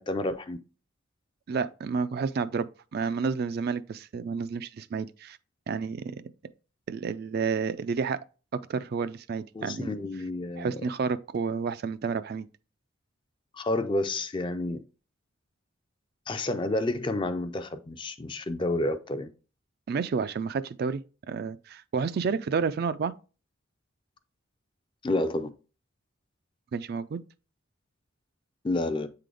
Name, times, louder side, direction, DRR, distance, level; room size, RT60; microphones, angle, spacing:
voice 1, 0.1-0.6 9.5-10.8 13.5-14.8 16.3-19.3 25.0-25.5 28.6-29.1, left 2 dB, 25° left, 0.4 m, -29 dB
voice 2, 1.5-5.4 5.7-6.2 6.9-8.2 8.5-9.9 10.6-12.5 19.9-23.1 26.7-27.2, right 5 dB, 50° right, 0.3 m, -30 dB
8.2 x 3.8 x 3.4 m
head